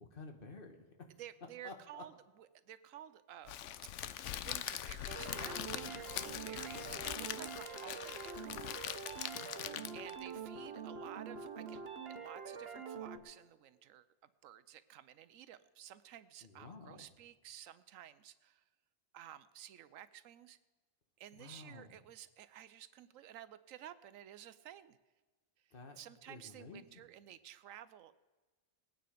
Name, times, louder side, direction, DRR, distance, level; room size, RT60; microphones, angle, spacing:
voice 1, 0.0-1.1 1.6-2.0 6.5-7.0 9.3-9.8 16.4-17.1 21.3-22.0 25.7-26.0 26.3-27.0, left 3 dB, 45° left, 5 dB, 1.3 m, -52 dB
voice 2, 1.2-3.6 4.4-8.6 9.9-11.8 12.1-18.6 19.1-20.6 21.2-25.0 25.6-28.1, right 11 dB, 80° right, 14 dB, 1.0 m, -53 dB
Crackle, 3.5-10.2, left 11 dB, 70° left, 0.9 m, -42 dB
sound 1, 5.1-13.2, right 6 dB, 50° right, 1.2 m, -45 dB
19.5 x 9.1 x 5.0 m, 1.3 s
omnidirectional pair, 1.4 m